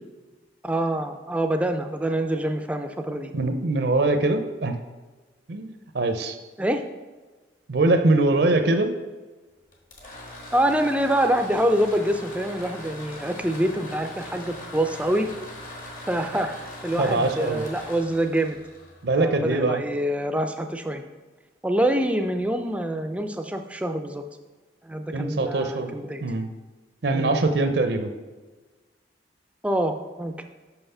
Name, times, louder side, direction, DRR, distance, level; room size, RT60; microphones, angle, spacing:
voice 1, 0.6-3.3 6.6-6.8 10.5-15.3 16.1-16.5 16.8-18.6 19.2-21.0 21.6-24.2 24.8-26.2 27.1-27.4 29.6-30.3, right 1 dB, 5° right, 6 dB, 0.4 m, -25 dB
voice 2, 3.3-4.8 5.5-6.4 7.7-8.9 17.0-17.6 19.0-19.8 25.1-25.9 26.2-26.5 27.0-28.1, right 2 dB, 60° right, 8 dB, 0.6 m, -22 dB
sound 1, 9.7-19.5, left 1 dB, 45° left, 1.5 m, -41 dB
6.0 x 5.7 x 5.5 m, 1.3 s
head